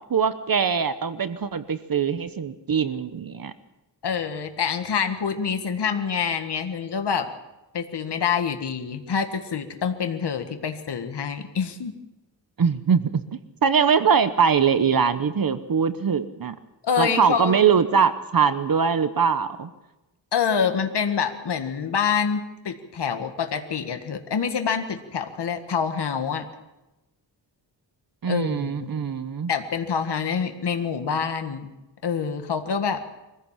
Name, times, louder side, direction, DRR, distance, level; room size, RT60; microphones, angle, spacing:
voice 1, 0.1-3.5 12.6-13.2 13.6-16.5 17.0-19.7 28.2-29.5, right 6 dB, 50° right, 12 dB, 1.1 m, -22 dB
voice 2, 4.0-7.3 7.7-11.9 16.8-17.6 20.3-26.5 28.2-28.9 29.5-31.7 32.0-33.0, left 6 dB, 65° left, 6 dB, 1.7 m, -26 dB
23.5 x 15.5 x 7.4 m, 1.0 s
wide cardioid pair, 110°, 43 cm